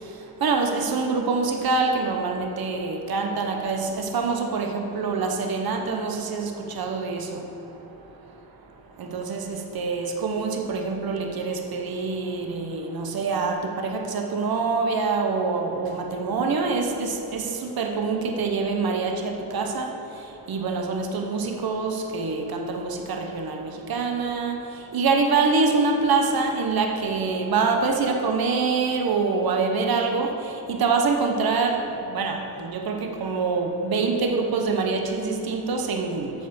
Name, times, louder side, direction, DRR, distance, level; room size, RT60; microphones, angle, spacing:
voice 1, 0.4-7.4 9.0-19.9 20.5-24.6 24.9-30.3 30.7-31.8 32.1-36.3, right 4 dB, 60° right, 3 dB, 1.0 m, -25 dB
8.2 x 6.7 x 7.0 m, 2.9 s
wide cardioid pair, 145°, 41 cm